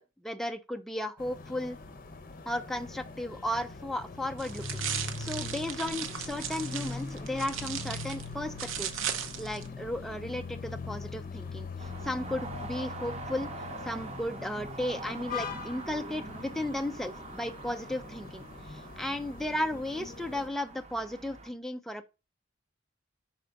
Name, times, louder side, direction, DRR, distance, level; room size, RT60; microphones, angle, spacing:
voice 1, 0.0-1.8 2.5-13.5 13.8-22.1, left 1 dB, ahead, 0.4 m, -35 dB
sound 1, 1.2-20.5, left 4 dB, 45° left, 0.7 m, -42 dB
sound 2, 4.4-9.7, right 8 dB, 75° right, 0.8 m, -37 dB
sound 3, 11.8-21.5, right 3 dB, 35° right, 0.8 m, -44 dB
5.6 x 4.3 x 5.0 m
head